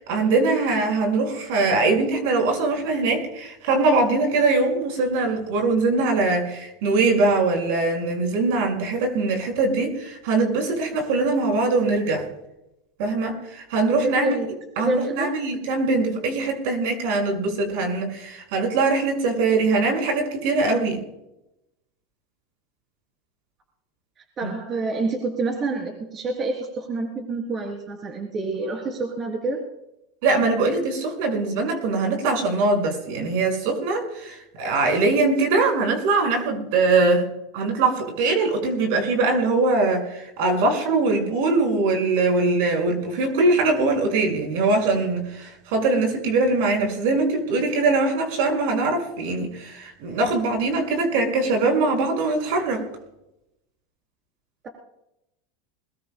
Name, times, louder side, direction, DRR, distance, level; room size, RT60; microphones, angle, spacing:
voice 1, 0.0-12.2 13.0-14.3 14.8-21.0 24.4-24.5 30.2-37.3 37.5-52.8, right 3 dB, 70° right, 3 dB, 5.8 m, -22 dB
voice 2, 14.0-15.3 24.4-29.6, right 3 dB, 30° right, 2 dB, 3.7 m, -28 dB
21.5 x 21.0 x 2.3 m, 0.87 s
supercardioid pair, 125°, 0 cm